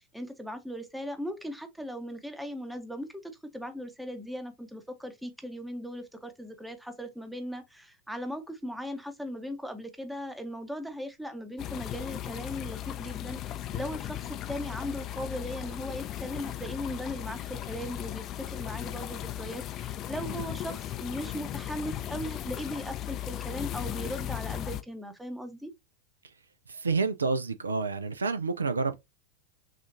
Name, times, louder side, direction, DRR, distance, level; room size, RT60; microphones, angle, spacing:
voice 1, 0.0-25.7, equal, 5° right, 0.8 m, -38 dB
sound 1, 11.6-24.8, left 12 dB, 35° left, 0.4 m, -37 dB
voice 2, 26.7-29.0, right 4 dB, 75° right, 0.4 m, -29 dB
6.2 x 2.4 x 2.5 m
figure-of-eight pair, 90°, 0 cm